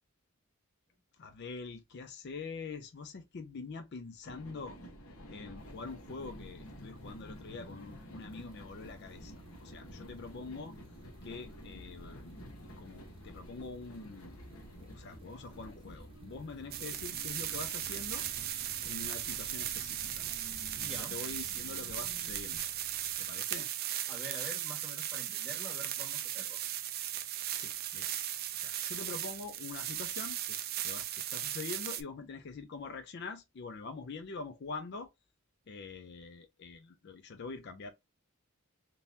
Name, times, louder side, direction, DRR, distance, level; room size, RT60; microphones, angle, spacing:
voice 1, 1.2-4.8 5.3-10.8 11.2-12.4 12.8-18.2 18.9-20.3 20.8-22.7 23.2-23.7 27.6-28.2 28.5-35.1 35.7-37.9, left 4 dB, 50° left, 0.4 m, -45 dB
sound 1, 4.2-22.6, equal, 70° left, 1.0 m, -51 dB
sound 2, 5.6-23.2, right 1 dB, 25° right, 0.8 m, -59 dB
sound 3, 16.7-32.0, right 12 dB, 45° right, 0.4 m, -37 dB
voice 2, 20.8-21.2 24.1-26.6, right 1 dB, 5° right, 1.3 m, -47 dB
3.7 x 2.8 x 2.6 m
head